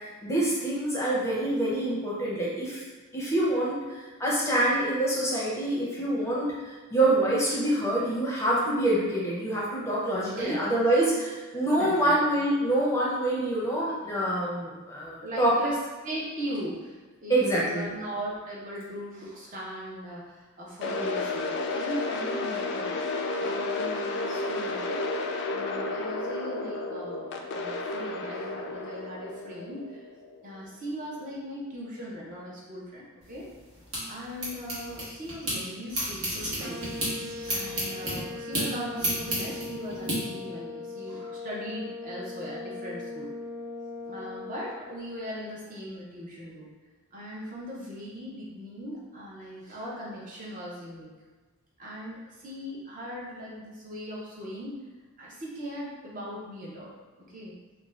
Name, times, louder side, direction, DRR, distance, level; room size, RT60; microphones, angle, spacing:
voice 1, 0.2-2.8 3.1-6.5 6.9-15.5 17.3-17.9, right 1 dB, 15° left, -6 dB, 0.6 m, -26 dB
voice 2, 11.7-12.2 15.2-25.0 25.5-30.0 30.4-33.5 34.1-36.9 37.5-43.3 44.0-46.7 47.1-51.1 51.8-54.8 55.2-56.9 57.2-57.5, equal, 40° right, -5 dB, 0.6 m, -39 dB
sound 1, 20.8-30.9, left 2 dB, 55° left, 0.3 m, -32 dB
sound 2, 33.2-35.6 35.9-40.2, right 1 dB, 80° right, 1.1 m, -32 dB
sound 3, 36.6-44.6, left 3 dB, 55° right, 1.0 m, -39 dB
2.5 x 2.2 x 3.2 m, 1.3 s
head